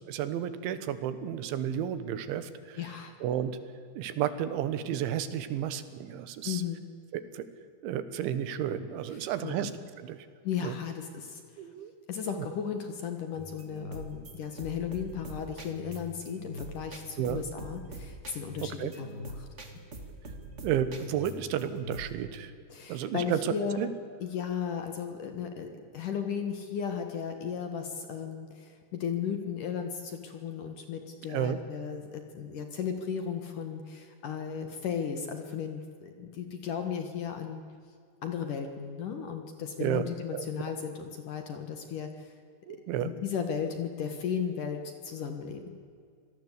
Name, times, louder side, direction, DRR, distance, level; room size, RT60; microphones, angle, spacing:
voice 1, 0.1-2.8 3.2-3.6 4.0-6.6 7.1-7.5 7.8-9.7 10.0-10.3 10.6-10.8 11.6-11.9 17.2-17.4 18.6-18.9 20.6-22.5 22.9-23.9 31.3-31.6 39.8-40.0 40.3-40.5 42.7-43.1, right 10 dB, 85° right, 13 dB, 3.7 m, -32 dB
voice 2, 2.8-3.1 6.4-6.8 9.1-9.7 10.4-11.4 12.1-19.5 22.7-23.8 24.2-37.6 38.2-42.3 43.0-45.9, left 7 dB, 60° left, 6 dB, 2.4 m, -35 dB
sound 1, 13.3-22.2, right 1 dB, 55° right, 0.7 m, -44 dB
26.5 x 18.5 x 8.2 m, 2.3 s
omnidirectional pair, 5.3 m